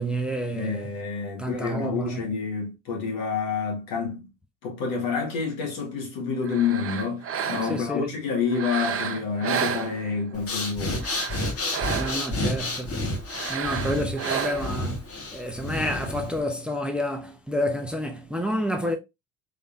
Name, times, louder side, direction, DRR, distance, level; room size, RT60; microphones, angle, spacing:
voice 1, 0.0-0.9 1.4-2.2 7.6-8.1 12.0-13.0 13.5-15.1 15.3-19.0, equal, 5° right, 0.8 m, -29 dB
voice 2, 0.5-4.3 4.6-11.0, left 5 dB, 70° left, 2.0 m, -28 dB
sound 1, 6.4-7.9 8.5-10.4 10.9-12.4 13.3-14.9, right 8 dB, 40° right, 0.7 m, -31 dB
Breathing, 10.3-16.4, left 1 dB, 40° left, 1.6 m, -30 dB
3.9 x 3.3 x 2.7 m
hypercardioid pair, 65°, 37 cm